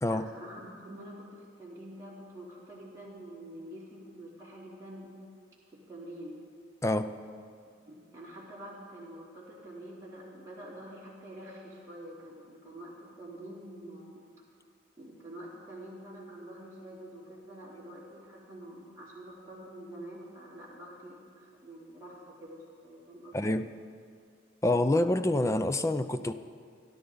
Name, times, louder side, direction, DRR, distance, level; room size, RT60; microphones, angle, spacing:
voice 1, 0.1-5.1 5.7-6.4 7.8-14.3 15.0-23.6, right 1 dB, 15° right, -9 dB, 3.2 m, -47 dB
voice 2, 6.8-7.1 23.3-23.7 24.6-26.3, left 1 dB, 15° left, 10 dB, 0.4 m, -27 dB
29.0 x 11.0 x 4.0 m, 2.2 s
head